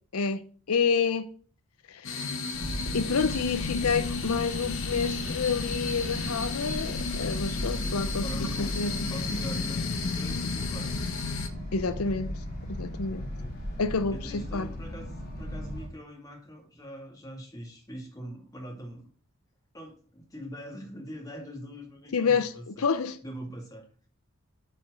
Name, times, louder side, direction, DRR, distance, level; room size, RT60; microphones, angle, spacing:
voice 1, 0.7-1.3 1.9-2.4 2.9-8.3 8.6-9.0 11.7-12.3 12.7-13.2 13.8-14.7 22.1-22.5 22.8-23.2, left 5 dB, 85° left, 0.6 m, -28 dB
sound 1, 2.0-11.5, left 4 dB, 65° left, 1.2 m, -33 dB
sound 2, 2.5-15.9, equal, 45° left, 3.0 m, -36 dB
voice 2, 8.2-8.8 9.1-10.9 13.1-13.8 14.1-19.1 19.7-22.8 23.2-23.9, equal, 15° left, 2.3 m, -43 dB
7.7 x 5.1 x 6.3 m
head